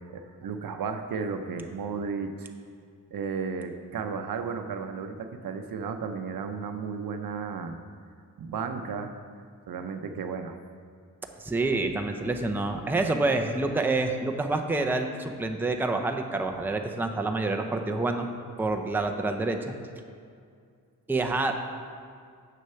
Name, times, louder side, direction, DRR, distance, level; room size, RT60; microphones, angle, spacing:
voice 1, 0.1-2.5 3.1-7.8 8.4-9.1 9.7-10.6, right 5 dB, 70° right, 7 dB, 0.7 m, -34 dB
voice 2, 11.4-18.3 18.6-19.7 21.1-21.5, right 2 dB, 5° right, 4 dB, 0.5 m, -27 dB
7.6 x 6.4 x 5.6 m, 2.3 s
wide cardioid pair, 120°, 36 cm